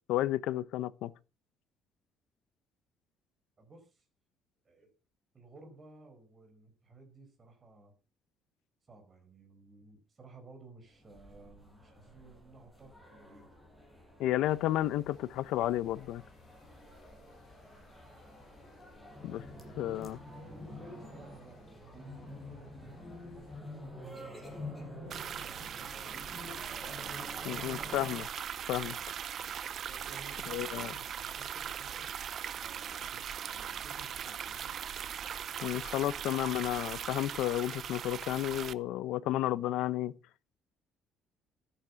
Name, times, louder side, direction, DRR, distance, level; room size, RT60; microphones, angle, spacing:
voice 1, 0.1-1.1 14.2-16.2 19.2-19.4 19.8-20.2 27.5-28.3 28.7-29.0 30.5-30.9 35.6-40.1, left 14 dB, 70° left, 0.8 m, -32 dB
voice 2, 3.6-4.0 4.6-4.9 5.3-7.9 8.9-13.5 18.5-25.7 26.1-27.8 29.8-32.1 32.5-34.7, right 2 dB, 20° right, 5.0 m, -56 dB
sound 1, 10.9-28.2, left 1 dB, ahead, 6.1 m, -49 dB
sound 2, 14.4-23.6, left 3 dB, 40° left, 5.2 m, -61 dB
sound 3, 25.1-38.7, right 9 dB, 40° right, 0.6 m, -40 dB
13.5 x 10.0 x 5.9 m
cardioid pair, 170°, 0 cm